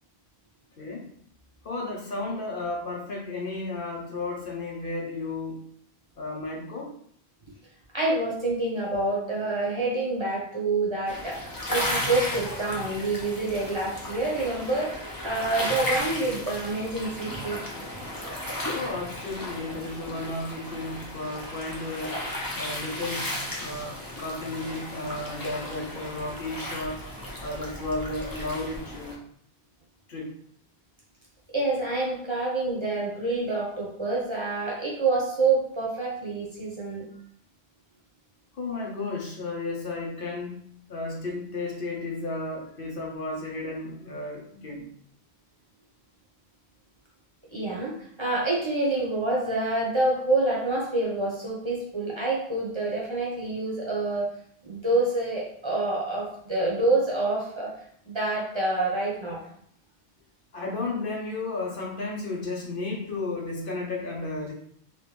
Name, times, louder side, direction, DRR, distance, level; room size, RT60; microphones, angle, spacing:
voice 1, 0.8-1.1 1.6-5.6 6.2-6.9 18.7-22.2 22.5-23.3 23.6-27.0 27.4-29.2 30.1-30.3 38.5-44.9 60.5-64.5, left 2 dB, 60° left, -1 dB, 0.9 m, -33 dB
voice 2, 7.9-17.6 31.5-37.0 47.5-54.3 54.6-57.7 58.0-59.4, right 2 dB, 30° right, -4 dB, 0.8 m, -27 dB
colera sea waves, 11.1-29.1, left 1 dB, 25° left, 0.7 m, -35 dB
3.1 x 3.0 x 3.3 m, 0.64 s
omnidirectional pair, 1.1 m